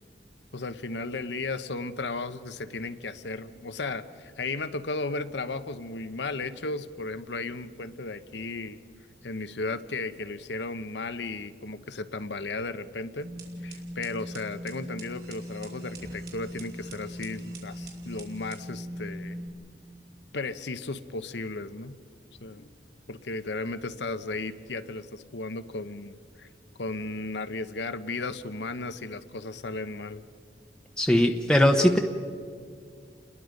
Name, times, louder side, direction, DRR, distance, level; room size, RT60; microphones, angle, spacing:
voice 1, 0.5-8.8 9.2-13.3 13.6-19.4 20.3-22.0 22.4-22.7 23.1-26.5 26.8-30.2, left 3 dB, 75° left, 12 dB, 0.9 m, -35 dB
sound 1, 13.2-19.5, equal, 55° right, 3.2 m, -40 dB
voice 2, 31.0-32.0, left 1 dB, 5° left, 3 dB, 0.9 m, -20 dB
29.5 x 21.0 x 5.2 m, 2.2 s
head